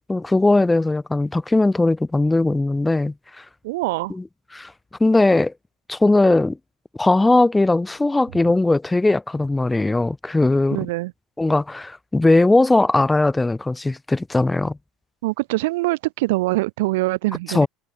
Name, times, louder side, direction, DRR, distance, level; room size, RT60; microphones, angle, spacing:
voice 1, 0.1-3.4 4.1-4.2 4.5-4.7 5.0-5.5 5.9-6.6 7.0-10.9 11.4-14.8 17.5-17.7, left 2 dB, 10° left, 1.0 m, -19 dB
voice 2, 3.6-4.1 10.7-11.1 15.2-17.7, right 20 dB, 70° right, 0.7 m, -23 dB
figure-of-eight pair, 65°, 0 cm